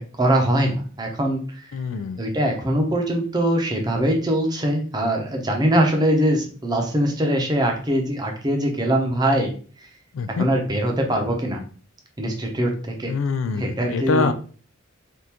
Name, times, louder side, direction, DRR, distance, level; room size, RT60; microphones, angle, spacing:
voice 1, 0.0-1.7 2.2-9.9 10.4-11.6 12.2-13.1 13.5-14.3, right 1 dB, 20° right, 2 dB, 0.6 m, -22 dB
voice 2, 1.7-2.2 10.1-10.5 13.1-14.3, left 4 dB, 80° left, 11 dB, 0.4 m, -24 dB
3.5 x 2.4 x 2.9 m, 0.41 s
head